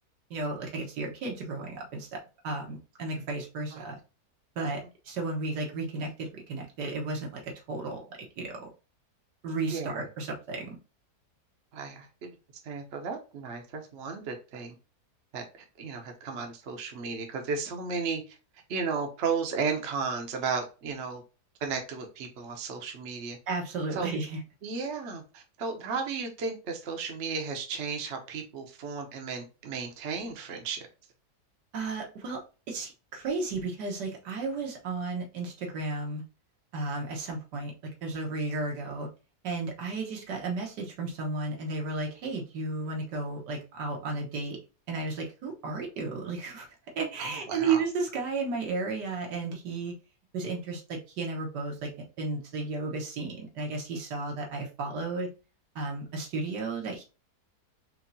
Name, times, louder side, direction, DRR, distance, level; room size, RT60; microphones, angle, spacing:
voice 1, 0.3-2.2 2.4-4.0 4.6-8.0 8.4-8.7 9.4-10.8 23.5-24.4 31.7-32.4 32.7-36.2 36.7-37.7 38.0-39.1 39.4-44.6 44.9-46.7 47.0-49.9 50.3-51.9 52.2-55.3 55.8-57.0, right 3 dB, 80° right, 0 dB, 1.7 m, -33 dB
voice 2, 9.7-10.1 11.7-12.4 12.6-14.7 15.3-18.4 18.7-21.2 21.6-23.4 23.9-24.1 24.6-30.9 47.2-47.8, right 5 dB, 50° right, 3 dB, 1.0 m, -34 dB
4.5 x 3.2 x 2.7 m, 0.33 s
omnidirectional pair, 1.8 m